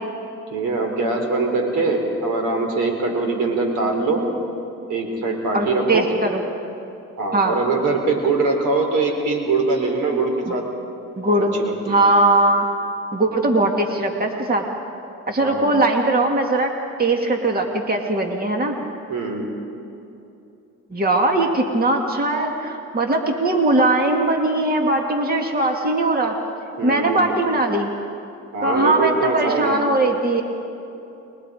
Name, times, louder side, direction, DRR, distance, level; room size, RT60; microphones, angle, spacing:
voice 1, 0.5-4.2 4.9-6.1 7.2-10.6 11.3-12.0 15.4-15.7 19.1-19.5 26.8-27.2 28.5-29.8, right 3 dB, 80° right, 3 dB, 3.9 m, -22 dB
voice 2, 5.5-6.4 7.3-7.6 10.5-10.6 11.2-11.5 11.9-12.6 13.1-14.6 15.3-16.7 17.0-18.8 20.9-26.4 26.8-27.9 28.6-30.4, right 2 dB, 30° right, 2 dB, 2.3 m, -20 dB
29.5 x 21.5 x 5.0 m, 2.7 s
cardioid pair, 90°, 30 cm